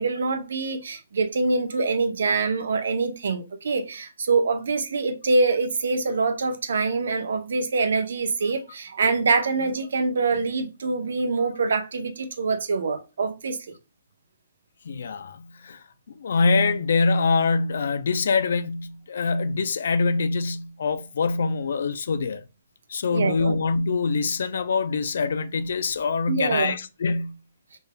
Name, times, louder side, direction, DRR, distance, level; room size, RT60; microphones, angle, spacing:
voice 1, 0.0-13.6 23.1-23.5 26.3-26.7, right 4 dB, 70° right, 0.7 m, -25 dB
voice 2, 14.9-15.8 16.2-22.4 22.9-27.3, left 4 dB, 65° left, 0.4 m, -24 dB
4.3 x 3.4 x 2.2 m
hypercardioid pair, 170°, 0 cm